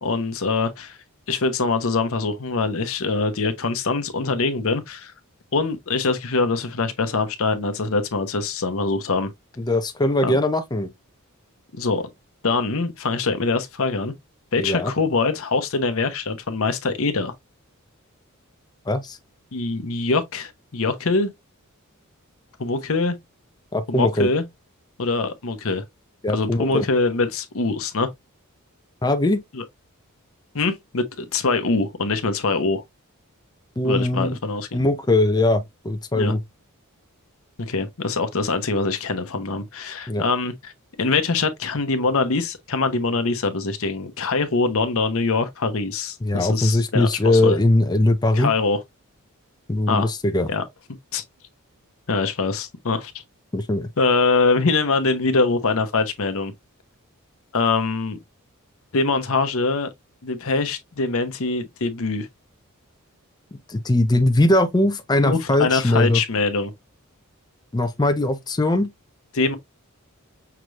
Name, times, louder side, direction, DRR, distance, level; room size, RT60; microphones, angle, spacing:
voice 1, 0.0-1.0 1.3-5.1 5.5-9.3 10.2-10.4 11.8-12.1 12.4-14.1 14.5-17.3 19.5-21.3 22.6-23.2 23.9-24.4 25.0-25.8 26.3-28.1 29.5-29.6 30.5-32.8 33.8-34.8 36.1-36.3 37.6-40.7 41.0-47.6 48.3-48.8 49.9-50.1 50.5-50.6 51.1-51.2 52.1-53.1 54.0-56.5 57.5-58.2 58.9-59.9 60.2-62.3 65.2-66.7 69.3-69.6, left 3 dB, 70° left, 0.8 m, -23 dB
voice 2, 9.6-10.9 14.6-14.9 18.9-19.2 23.7-24.3 26.2-26.8 29.0-29.4 33.8-34.4 34.7-36.4 40.1-40.2 46.2-48.5 49.7-50.5 53.5-53.9 63.7-66.2 67.7-68.9, left 1 dB, 20° left, 0.5 m, -20 dB
5.8 x 3.2 x 2.4 m
head